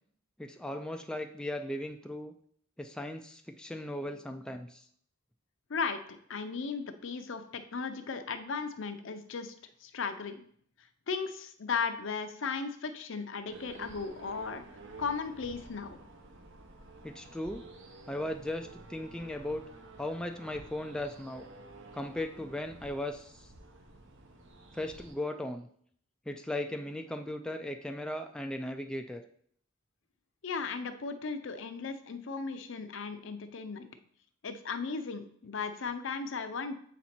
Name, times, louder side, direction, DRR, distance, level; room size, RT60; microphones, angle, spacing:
voice 1, 0.4-2.3 2.8-4.8 17.0-17.6 18.1-19.6 20.0-21.4 21.9-23.5 24.7-25.7 26.3-29.2, left 1 dB, 5° left, 5 dB, 0.3 m, -37 dB
voice 2, 5.7-6.0 6.3-9.5 9.8-10.4 11.1-14.6 15.0-16.0 30.4-33.9 34.4-36.7, left 5 dB, 65° left, 9 dB, 0.6 m, -36 dB
sound 1, 13.5-25.1, right 2 dB, 65° right, 0.9 m, -51 dB
7.3 x 4.2 x 4.3 m, 0.62 s
head